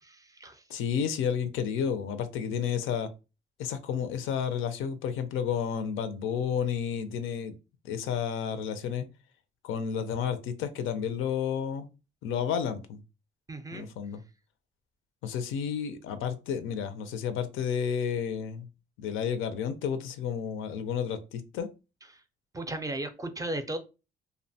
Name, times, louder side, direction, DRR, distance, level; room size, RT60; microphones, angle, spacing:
voice 1, 0.0-0.6 13.5-13.9 22.1-22.2 22.5-23.8, right 1 dB, 15° right, 0.4 m, -36 dB
voice 2, 0.7-3.1 3.6-7.5 7.8-9.1 9.6-11.9 12.2-13.0 13.7-14.2 15.2-18.7 19.0-21.7, left 7 dB, 85° left, 0.4 m, -31 dB
2.6 x 2.1 x 2.6 m
cardioid pair, 90°, 20 cm